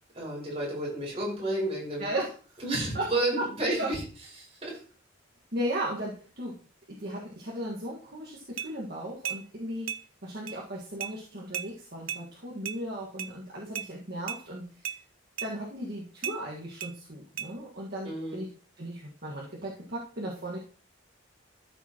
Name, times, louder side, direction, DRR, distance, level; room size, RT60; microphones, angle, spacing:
voice 1, 0.2-2.1 2.6-4.0 4.4-4.8 18.0-18.4, right 1 dB, 30° right, -4 dB, 5.3 m, -31 dB
voice 2, 2.0-2.3 2.9-3.1 3.8-3.9 5.5-6.5 6.9-10.0 10.2-15.0 15.4-18.5 18.8-20.6, right 1 dB, 50° right, -4 dB, 1.7 m, -36 dB
sound 1, 8.6-8.7 9.2-9.4 9.9-10.0 10.5-10.6 11.0-11.1 11.5-11.7 12.1-12.2 12.6-12.8 13.2-13.3 13.7-13.9 14.3-14.4 14.8-15.0 15.4-15.5 16.2-16.4 16.8-16.9 17.4-17.5, right 8 dB, 80° right, 0.7 m, -35 dB
13.0 x 7.2 x 3.0 m, 0.40 s
head